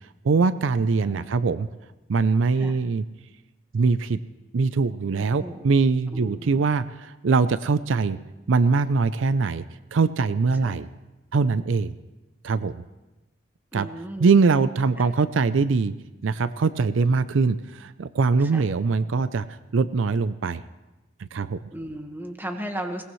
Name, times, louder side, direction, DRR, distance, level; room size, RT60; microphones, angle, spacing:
voice 1, 0.2-1.7 2.1-3.0 3.7-4.2 4.5-8.2 8.5-9.6 9.9-10.9 11.3-11.9 12.4-12.8 13.7-13.9 14.2-15.9 16.2-19.5 19.7-20.6 21.3-21.6, right 4 dB, 80° right, 14 dB, 0.5 m, -22 dB
voice 2, 5.1-5.6 6.1-6.6 10.6-10.8 13.7-14.3 18.5-18.7 21.7-23.0, right 1 dB, 10° right, 4 dB, 1.4 m, -35 dB
21.5 x 18.5 x 3.1 m, 1.1 s
head